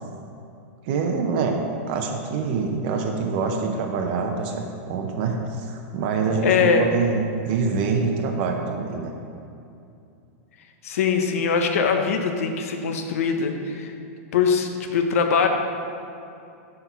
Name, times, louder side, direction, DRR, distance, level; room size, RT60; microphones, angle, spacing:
voice 1, 0.8-1.6 1.9-9.1, right 4 dB, 45° right, 2 dB, 0.6 m, -25 dB
voice 2, 6.4-6.9 10.8-13.9 14.3-15.5, left 6 dB, 75° left, 5 dB, 0.7 m, -22 dB
5.9 x 4.4 x 5.5 m, 2.6 s
supercardioid pair, 165°, 8 cm